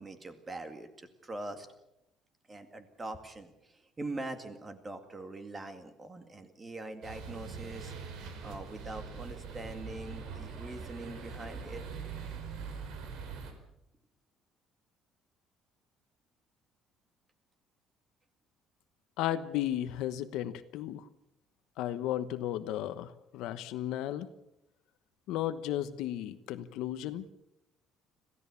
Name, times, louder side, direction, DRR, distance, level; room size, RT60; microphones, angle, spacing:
voice 1, 0.0-1.7 2.5-7.9 8.4-11.8, right 2 dB, 15° right, 8 dB, 2.1 m, -43 dB
sound 1, 7.0-13.5, right 5 dB, 65° right, 4.4 m, -42 dB
voice 2, 19.2-21.1 21.8-24.3 25.3-27.3, left 12 dB, 70° left, 10 dB, 1.1 m, -34 dB
26.5 x 16.5 x 7.1 m, 0.87 s
cardioid pair, 175°, 0 cm